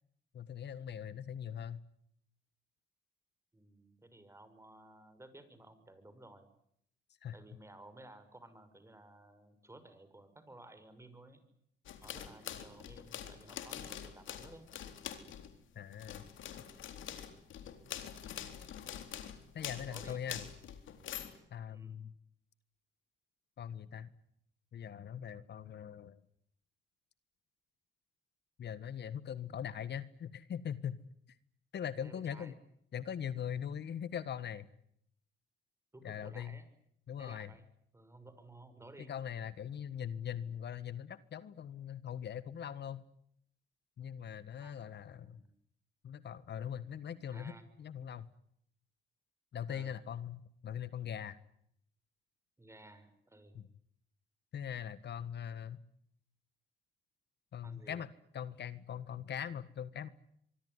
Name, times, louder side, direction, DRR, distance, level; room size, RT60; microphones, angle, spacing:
voice 1, 0.3-1.8 7.2-7.3 15.7-16.2 19.5-20.4 21.5-22.1 23.6-24.1 24.7-26.2 28.6-31.0 31.7-32.6 32.9-34.7 36.0-36.6 37.1-37.5 39.0-43.0 44.0-45.4 46.0-47.5 47.8-48.3 49.5-51.4 53.5-53.7 54.5-55.8 57.5-58.1 58.3-60.1, left 9 dB, 60° left, 15 dB, 1.5 m, -41 dB
voice 2, 3.5-6.5 7.3-11.4 12.0-14.7 19.8-20.2 21.7-22.0 32.0-32.5 35.9-36.6 37.2-37.7 37.9-39.1 44.6-45.5 47.3-47.6 49.7-50.0 52.6-53.6 57.6-58.0, right 1 dB, 15° right, 11 dB, 6.2 m, -56 dB
sound 1, 11.9-15.6 15.9-21.4, left 9 dB, 75° left, 4.0 m, -45 dB
25.0 x 24.0 x 9.8 m, 0.72 s
cardioid pair, 90°, 20 cm